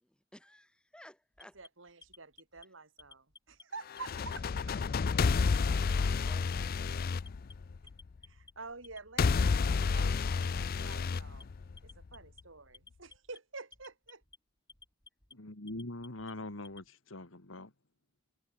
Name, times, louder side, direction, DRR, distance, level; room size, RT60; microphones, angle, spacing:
voice 1, 0.0-1.6, left 1 dB, 5° left, 4.4 m, -57 dB
Alarm, 1.3-2.6 3.0-3.6 4.0-4.6 4.9-5.6 5.9-6.6 6.9-7.5 7.9-8.5 8.8-9.5 9.8-10.5 10.8-11.4 11.8-12.4 12.7-13.4 13.7-14.4 14.7-15.3 15.7-16.9, left 4 dB, 20° left, 3.7 m, -56 dB
voice 2, 1.5-4.8 8.2-11.5 11.8-14.2, right 4 dB, 75° right, 3.5 m, -49 dB
sound 1, 3.9-8.0 9.2-12.0, left 5 dB, 50° left, 0.4 m, -30 dB
voice 3, 15.3-17.7, left 2 dB, 80° left, 2.2 m, -43 dB
head